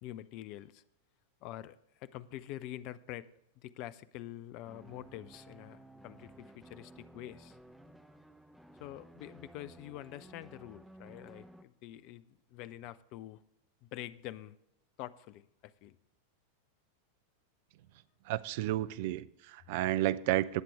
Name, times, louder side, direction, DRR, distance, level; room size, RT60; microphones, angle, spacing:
voice 1, 0.0-0.8 1.4-3.3 3.6-7.6 8.8-13.4 13.8-14.6 15.0-16.0, left 13 dB, 40° left, 0.5 m, -46 dB
sound 1, 4.7-11.7, right 1 dB, ahead, 0.8 m, -55 dB
voice 2, 18.3-20.6, right 14 dB, 50° right, 0.5 m, -31 dB
19.0 x 7.5 x 3.5 m
figure-of-eight pair, 90°, 0 cm